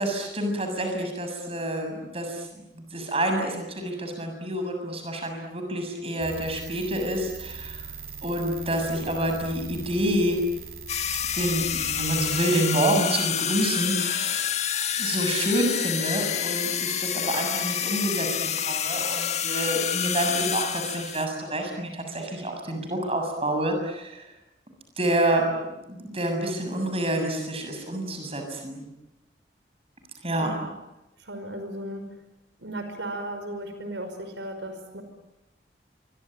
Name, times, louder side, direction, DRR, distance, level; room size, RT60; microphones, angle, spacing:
voice 1, 0.0-7.9 8.2-10.4 11.3-14.4 15.0-24.2 25.0-28.9 30.2-30.5, right 1 dB, 30° right, 4 dB, 7.0 m, -28 dB
sound 1, 6.2-12.4, right 5 dB, 55° right, 5.0 m, -40 dB
sound 2, 10.9-21.2, left 9 dB, 35° left, 1.7 m, -28 dB
voice 2, 30.4-30.7 31.2-32.1 32.6-35.0, right 1 dB, 85° right, 7 dB, 5.4 m, -36 dB
27.0 x 24.0 x 9.1 m, 0.95 s
head